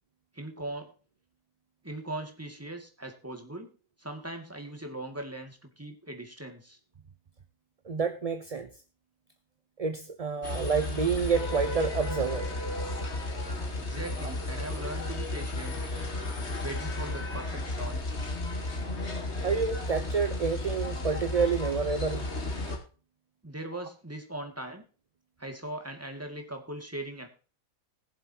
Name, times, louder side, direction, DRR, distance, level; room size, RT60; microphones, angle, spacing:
voice 1, 0.3-0.9 1.8-3.7 4.0-6.8 13.8-15.8 16.6-18.0 23.4-24.8 25.4-27.3, right 1 dB, 10° right, 4 dB, 2.2 m, -39 dB
voice 2, 7.8-8.7 9.8-12.5 19.4-22.3, right 5 dB, 30° right, 8 dB, 0.7 m, -28 dB
sound 1, 10.4-22.8, left 2 dB, 50° left, 2.5 m, -33 dB
20.5 x 7.5 x 2.8 m, 0.37 s
omnidirectional pair, 1.5 m